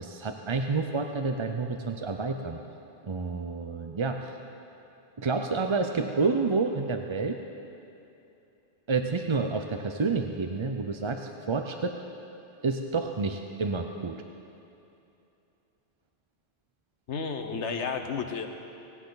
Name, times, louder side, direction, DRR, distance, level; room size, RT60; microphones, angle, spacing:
voice 1, 0.0-2.6 3.0-4.4 5.2-7.4 8.9-11.9 12.6-14.2, right 4 dB, 35° right, 5 dB, 0.5 m, -29 dB
voice 2, 17.1-18.5, left 5 dB, 85° left, 6 dB, 1.3 m, -32 dB
18.0 x 17.0 x 4.0 m, 2.8 s
omnidirectional pair, 1.2 m